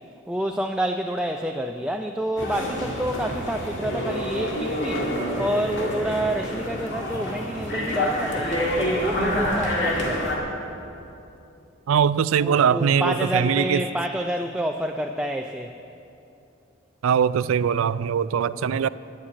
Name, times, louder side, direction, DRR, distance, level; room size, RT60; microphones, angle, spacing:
voice 1, 0.3-5.1 5.4-10.4 12.4-15.7, right 1 dB, 5° right, 3 dB, 0.3 m, -28 dB
sound 1, 2.4-10.4, equal, 60° left, 2.1 m, -27 dB
voice 2, 11.9-13.8 17.0-18.9, right 7 dB, 80° right, 17 dB, 0.3 m, -21 dB
11.5 x 8.7 x 8.7 m, 2.8 s
head